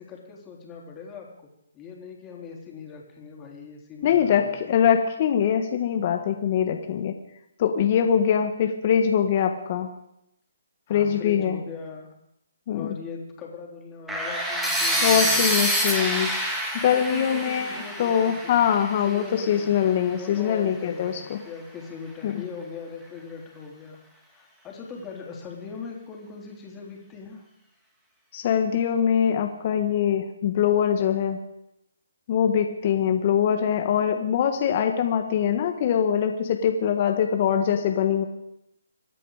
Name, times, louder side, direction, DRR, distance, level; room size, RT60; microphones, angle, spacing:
voice 1, 0.0-1.5 1.7-4.6 10.9-12.2 12.7-15.6 16.8-18.7 19.0-24.0 24.3-27.5, left 5 dB, 15° left, -1 dB, 3.9 m, -40 dB
voice 2, 4.0-7.1 7.6-9.9 10.9-11.6 12.7-12.9 15.0-16.3 16.7-21.4 22.2-22.3 28.3-31.4 32.3-38.2, left 8 dB, 40° left, 5 dB, 1.5 m, -23 dB
sound 1, 14.1-20.0, equal, 5° right, 2.7 m, -27 dB
26.0 x 10.0 x 5.0 m, 0.80 s
hypercardioid pair, 150°, 0 cm